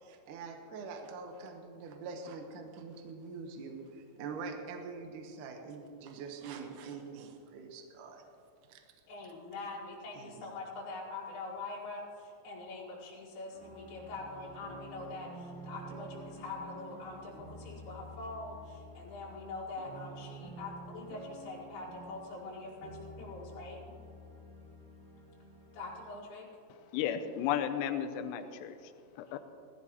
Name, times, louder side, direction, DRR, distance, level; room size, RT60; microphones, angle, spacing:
voice 1, 0.0-8.2 8.7-8.8 10.2-10.5, right 4 dB, 65° right, 3 dB, 2.2 m, -44 dB
voice 2, 9.1-23.8 25.7-26.5 29.3-29.4, left 3 dB, 65° left, -6 dB, 3.8 m, -44 dB
sound 1, 13.5-26.2, right 1 dB, 45° right, 3.6 m, -49 dB
voice 3, 26.9-29.4, left 9 dB, 85° left, 9 dB, 2.9 m, -34 dB
19.5 x 14.0 x 3.1 m, 2.5 s
omnidirectional pair, 4.9 m